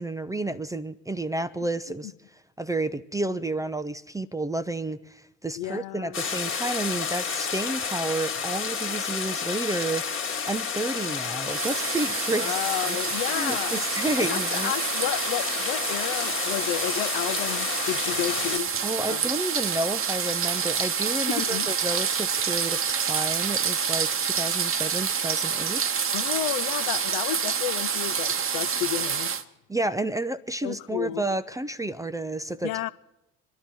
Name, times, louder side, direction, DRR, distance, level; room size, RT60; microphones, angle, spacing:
voice 1, 0.0-2.1 2.6-10.1 10.5-12.6 12.9-13.0 13.3-14.7 18.8-26.0 29.7-32.8, right 2 dB, 10° right, 0.5 m, -31 dB
voice 2, 5.6-6.2 12.3-13.8 14.2-18.7 19.0-19.2 21.3-21.7 26.1-29.4 30.6-31.2 32.6-32.9, left 14 dB, 55° left, 0.6 m, -31 dB
sound 1, 6.1-18.6, left 6 dB, 30° left, 1.4 m, -30 dB
sound 2, 11.4-29.4, right 6 dB, 30° right, 1.0 m, -28 dB
26.5 x 11.5 x 4.4 m
hypercardioid pair, 60°, 41 cm